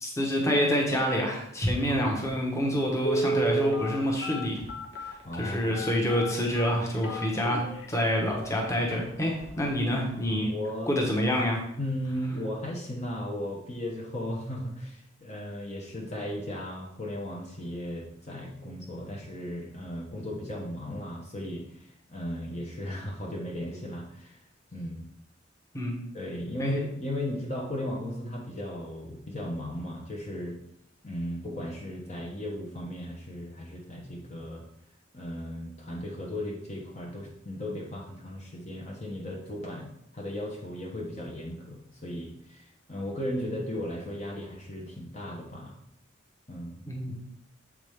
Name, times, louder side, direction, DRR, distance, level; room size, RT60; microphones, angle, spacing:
voice 1, 0.0-4.6 5.0-10.5 10.9-11.6 25.7-25.9 26.6-26.7 46.9-47.1, equal, 15° left, -1 dB, 1.2 m, -27 dB
voice 2, 1.8-2.1 5.2-5.7 10.3-10.9 11.8-24.4 24.7-25.1 26.1-30.6 31.0-34.6 35.1-45.8 46.5-46.8, left 1 dB, 35° left, -2 dB, 1.0 m, -36 dB
Telephone, 3.0-7.8 8.4-8.5 8.8-9.0 9.4-9.7 10.0-10.1, right 2 dB, 65° left, 1.3 m, -31 dB
7.5 x 4.8 x 3.6 m, 0.74 s
head